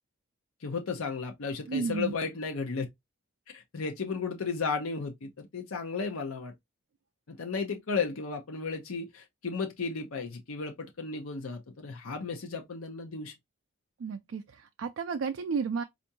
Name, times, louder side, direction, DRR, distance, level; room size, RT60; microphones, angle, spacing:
voice 1, 0.6-2.9 3.5-6.5 7.3-13.3, left 4 dB, 85° left, 0.7 m, -34 dB
voice 2, 1.7-2.1 14.0-15.8, right 5 dB, 60° right, 0.3 m, -32 dB
4.5 x 2.5 x 2.6 m
head